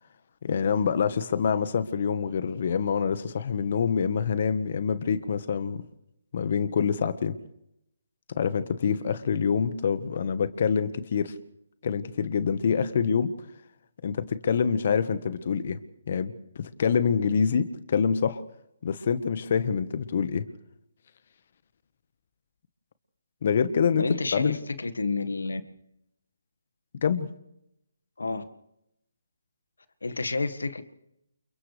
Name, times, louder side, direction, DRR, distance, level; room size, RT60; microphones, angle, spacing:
voice 1, 0.4-5.8 6.3-7.3 8.3-11.3 11.8-13.3 14.0-15.8 16.1-18.4 18.8-20.4 23.4-24.6 27.0-27.3, left 6 dB, 50° left, 12 dB, 1.3 m, -26 dB
voice 2, 24.0-25.6 28.2-28.4 30.0-30.8, left 3 dB, 80° left, 11 dB, 1.6 m, -29 dB
29.5 x 29.0 x 3.4 m, 0.81 s
figure-of-eight pair, 150°, 0 cm